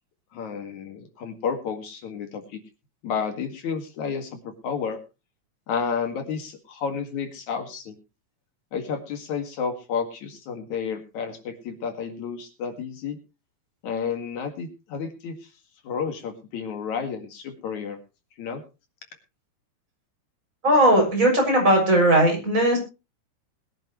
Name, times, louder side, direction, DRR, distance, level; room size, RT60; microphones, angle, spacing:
voice 1, 0.3-2.6 3.0-5.0 5.7-8.0 8.7-13.2 13.8-15.4 15.8-18.0 18.4-18.6, left 6 dB, 70° left, 6 dB, 3.4 m, -31 dB
voice 2, 20.6-22.8, right 1 dB, 25° right, 0 dB, 7.1 m, -18 dB
21.0 x 10.5 x 3.1 m, 0.29 s
omnidirectional pair, 3.4 m